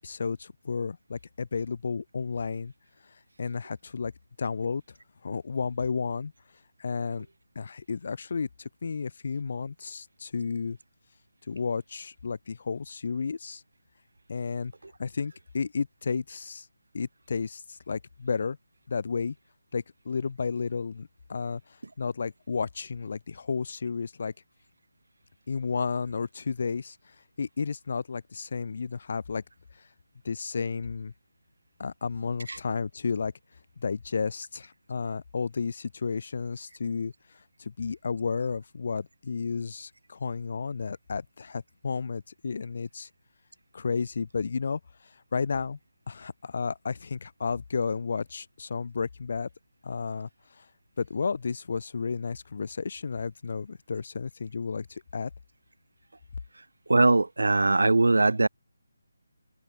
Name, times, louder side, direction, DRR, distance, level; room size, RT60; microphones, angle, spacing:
voice 1, 0.0-2.7 3.4-4.1 4.4-4.8 5.2-6.3 6.8-7.3 7.6-10.8 11.5-13.6 14.3-14.7 15.0-16.7 16.9-18.6 18.9-19.4 19.7-21.6 22.0-24.3 25.5-27.0 27.4-29.4 30.2-31.1 31.8-33.3 33.8-37.1 37.6-43.1 43.7-44.8 45.3-45.8 46.1-49.5 49.8-50.3 50.6-50.7 51.0-55.3, left 5 dB, 50° left, 5.4 m, -32 dB
voice 2, 56.9-58.5, right 2 dB, 85° right, 3.2 m, -21 dB
figure-of-eight pair, 165°, 0 cm